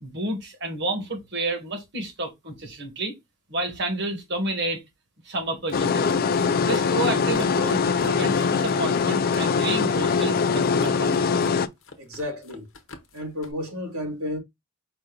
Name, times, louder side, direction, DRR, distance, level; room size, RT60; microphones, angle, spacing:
voice 1, 0.0-3.1 3.5-4.8 5.2-6.2 6.6-11.1, right 2 dB, 55° right, 1.5 m, -30 dB
sound 1, 5.6-9.5 9.8-10.3 10.7-11.5 11.8-13.5, left 3 dB, 65° left, 0.9 m, -44 dB
sound 2, 5.7-11.7, left 5 dB, 45° left, 0.3 m, -22 dB
voice 2, 12.0-12.6 13.1-14.4, left 1 dB, 85° right, 1.6 m, -32 dB
5.1 x 2.6 x 3.8 m
head